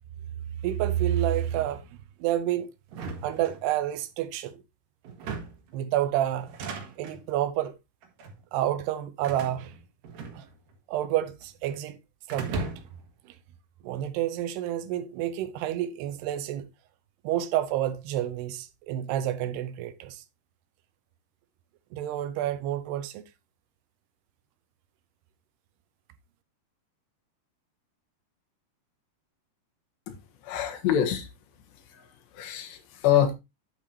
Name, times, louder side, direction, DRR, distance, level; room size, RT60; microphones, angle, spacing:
voice 1, 0.6-1.9 2.2-2.7 3.2-4.6 5.7-7.8 8.5-9.7 10.3-10.5 10.9-12.0 12.3-12.7 13.8-16.7 17.2-20.2 21.9-23.2, right 12 dB, 80° right, 2.8 m, -29 dB
sound 1, 2.9-4.0 5.0-5.7 6.4-7.2 8.0-8.4 9.2-10.8 11.0-11.8 12.3-13.1, right 4 dB, 60° right, 3.1 m, -38 dB
voice 2, 30.4-31.3 31.9-32.1 32.3-33.3, left 10 dB, 85° left, 3.7 m, -25 dB
9.3 x 8.4 x 2.8 m
omnidirectional pair, 4.8 m